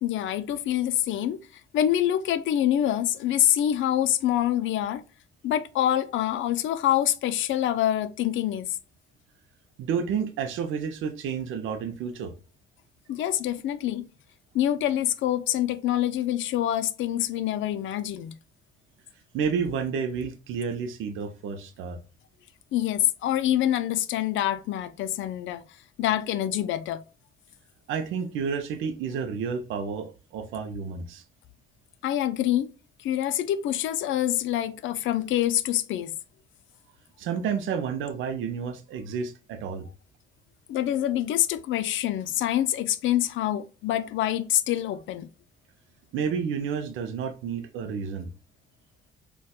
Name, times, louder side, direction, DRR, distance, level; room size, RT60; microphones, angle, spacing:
voice 1, 0.0-5.0 5.4-8.8 13.1-14.1 14.5-18.3 22.7-25.6 26.0-27.0 32.0-32.7 33.0-36.1 40.7-45.3, left 12 dB, 75° left, 0.4 m, -26 dB
voice 2, 9.8-12.3 19.3-22.0 27.9-31.2 37.2-39.9 46.1-48.3, right 6 dB, 80° right, 0.5 m, -30 dB
4.1 x 2.2 x 2.2 m
cardioid pair, 90°, 20 cm